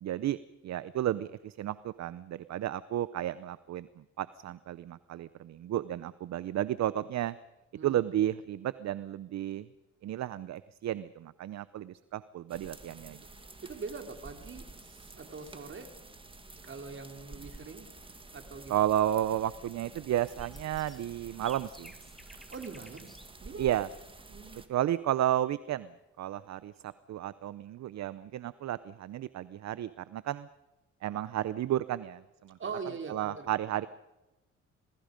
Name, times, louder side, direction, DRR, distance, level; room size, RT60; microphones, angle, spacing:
voice 1, 0.0-0.4 0.6-7.4 7.8-9.7 10.0-13.2 18.7-21.9 23.6-23.9 24.7-25.9 26.2-30.5 31.0-32.6 33.1-33.9, right 12 dB, 60° right, 16 dB, 0.7 m, -32 dB
sound 1, 12.5-24.7, right 2 dB, 15° right, 2.3 m, -50 dB
voice 2, 13.6-15.9 16.6-17.9 18.3-18.7 22.5-23.1 23.4-23.7 24.3-24.7 32.6-33.5, right 5 dB, 40° right, 5 dB, 3.5 m, -42 dB
sound 2, 20.1-23.4 23.7-23.8 26.7-26.9, equal, ahead, 1.7 m, -55 dB
27.5 x 20.5 x 5.3 m, 1.0 s
cardioid pair, 90°, 30 cm